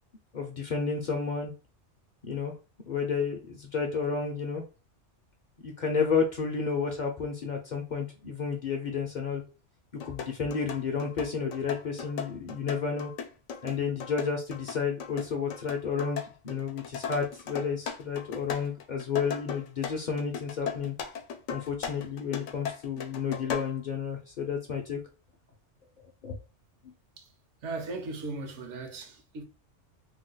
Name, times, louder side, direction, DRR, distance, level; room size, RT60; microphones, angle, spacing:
voice 1, 0.3-1.5 2.2-2.5 2.9-4.6 5.6-9.4 10.0-13.1 13.6-20.9 21.5-25.0 26.2-26.4, left 5 dB, 50° left, 0.6 m, -31 dB
sound 1, 10.0-23.8, left 7 dB, 85° left, 0.9 m, -37 dB
voice 2, 27.6-29.4, right 3 dB, 75° right, 1.0 m, -37 dB
2.8 x 2.2 x 3.7 m
omnidirectional pair, 1.2 m